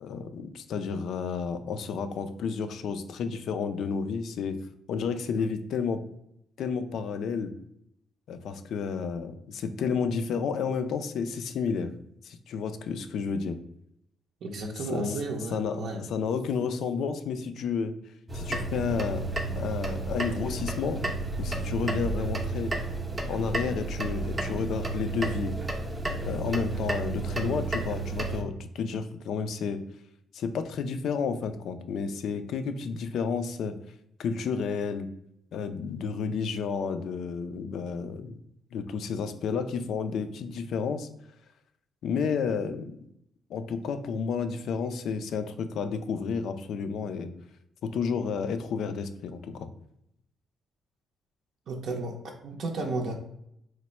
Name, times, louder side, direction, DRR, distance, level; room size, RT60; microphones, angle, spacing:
voice 1, 0.0-4.6 4.9-6.0 6.6-7.5 8.3-11.9 12.2-13.6 14.7-15.2 15.5-18.0 18.3-21.1 21.4-22.7 23.3-25.6 26.2-29.8 30.3-33.8 34.2-35.1 35.5-38.4 38.7-41.1 42.0-43.0 43.5-47.3 47.8-49.7, left 5 dB, 70° left, 9 dB, 0.3 m, -31 dB
voice 2, 14.4-16.0 51.7-52.1 52.4-53.2, right 2 dB, 65° right, 1 dB, 0.5 m, -32 dB
sound 1, 18.3-28.4, right 3 dB, 20° right, 0.5 m, -32 dB
3.1 x 2.0 x 4.2 m, 0.76 s
cardioid pair, 90°, 0 cm